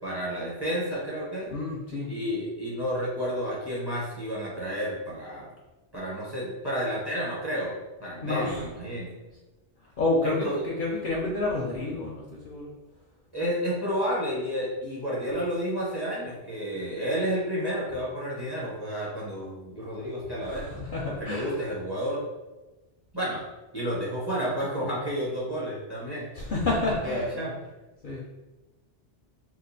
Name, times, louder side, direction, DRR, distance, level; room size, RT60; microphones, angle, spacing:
voice 1, 0.0-1.5 2.1-5.5 5.9-9.2 10.2-10.6 13.3-20.8 21.1-22.2 23.1-23.4 23.7-26.3 27.0-27.6, equal, 25° right, -7 dB, 0.9 m, -31 dB
voice 2, 1.5-2.1 8.2-8.7 10.0-12.7 20.4-21.6 26.3-27.3 28.0-28.2, left 2 dB, 55° left, -2 dB, 0.6 m, -29 dB
3.0 x 2.2 x 3.9 m, 1.1 s
omnidirectional pair, 1.2 m